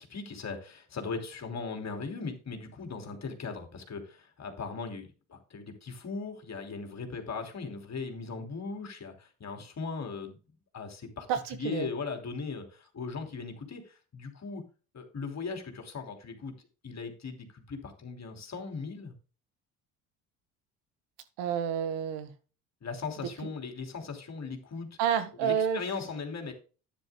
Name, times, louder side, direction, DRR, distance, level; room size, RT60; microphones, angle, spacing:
voice 1, 0.0-10.4 10.7-11.3 11.6-14.6 14.9-19.1 22.8-24.9 25.4-26.5, left 4 dB, 35° left, 5 dB, 3.2 m, -38 dB
voice 2, 11.3-11.9 21.4-22.3 25.0-25.8, right 8 dB, 70° right, 11 dB, 1.6 m, -29 dB
12.5 x 10.0 x 2.2 m, 0.35 s
hypercardioid pair, 65°, 43 cm